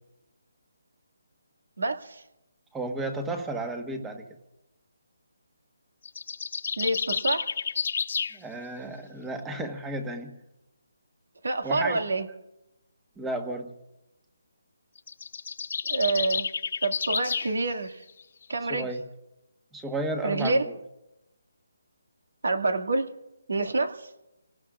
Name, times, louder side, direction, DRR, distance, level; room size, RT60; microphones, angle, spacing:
voice 1, 1.8-2.2 6.8-7.5 11.4-12.3 15.9-16.5 16.8-18.0 18.5-18.9 20.2-20.6 22.4-23.1 23.5-23.9, right 2 dB, 85° right, 5 dB, 2.1 m, -27 dB
voice 2, 2.7-4.2 8.3-10.3 11.6-12.1 13.2-13.7 18.7-19.0 19.7-20.7, right 2 dB, 5° right, 5 dB, 1.2 m, -33 dB
sound 1, 6.0-8.4 15.0-17.5, left 6 dB, 50° left, 0.6 m, -30 dB
28.0 x 18.5 x 2.4 m, 0.93 s
hypercardioid pair, 170°, 0 cm